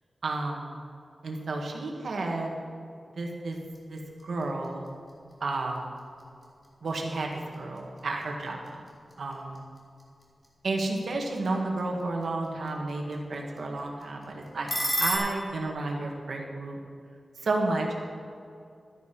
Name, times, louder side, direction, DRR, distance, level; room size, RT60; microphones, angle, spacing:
voice 1, 0.2-0.8 1.2-2.5 3.2-3.6 3.9-4.8 5.4-5.9 6.8-8.9 9.2-9.6 10.6-14.7 15.0-16.8 17.4-18.0, right 2 dB, 80° right, 0 dB, 2.0 m, -31 dB
sound 1, 3.4-15.1, equal, 25° left, 2.8 m, -40 dB
13.0 x 10.0 x 6.1 m, 2.4 s
wide cardioid pair, 130°, 0 cm